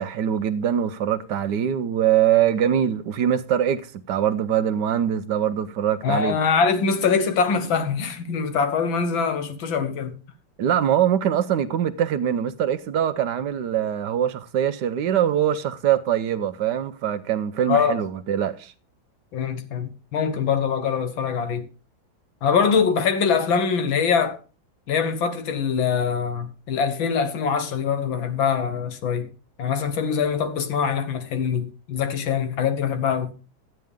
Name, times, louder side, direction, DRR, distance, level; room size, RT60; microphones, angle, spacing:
voice 1, 0.0-6.3 10.6-18.7, right 10 dB, 70° right, 1.2 m, -23 dB
voice 2, 6.0-10.1 17.7-18.0 19.3-21.7 22.4-24.4 24.9-29.3 29.6-33.3, left 6 dB, 85° left, 1.9 m, -23 dB
12.0 x 9.1 x 3.5 m
omnidirectional pair, 2.1 m